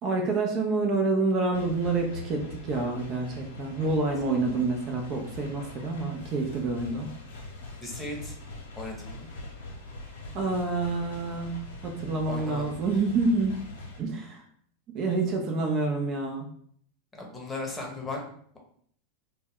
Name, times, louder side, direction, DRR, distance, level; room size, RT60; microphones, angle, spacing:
voice 1, 0.0-7.1 10.3-13.6 14.0-14.4 14.9-16.5, right 3 dB, 40° right, 2 dB, 0.5 m, -28 dB
sound 1, 1.5-14.0, left 2 dB, 75° left, 0.6 m, -43 dB
voice 2, 7.8-8.3 8.7-9.3 12.2-12.7 17.1-18.2, left 2 dB, 15° left, -1 dB, 0.8 m, -36 dB
2.1 x 2.1 x 3.4 m, 0.62 s
hypercardioid pair, 95°, 0 cm